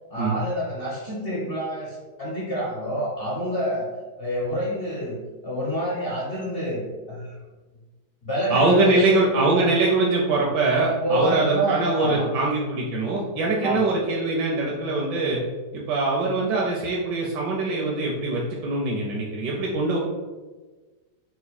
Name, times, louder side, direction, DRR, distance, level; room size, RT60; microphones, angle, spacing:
voice 1, 0.1-3.9 4.2-5.2 5.4-6.8 7.1-7.4 8.2-9.0 11.0-12.3 13.6-13.9, equal, 45° left, -4 dB, 0.8 m, -27 dB
voice 2, 8.5-15.4 15.7-20.0, right 2 dB, 80° right, -3 dB, 1.3 m, -23 dB
4.4 x 2.4 x 4.0 m, 1.3 s
omnidirectional pair, 1.8 m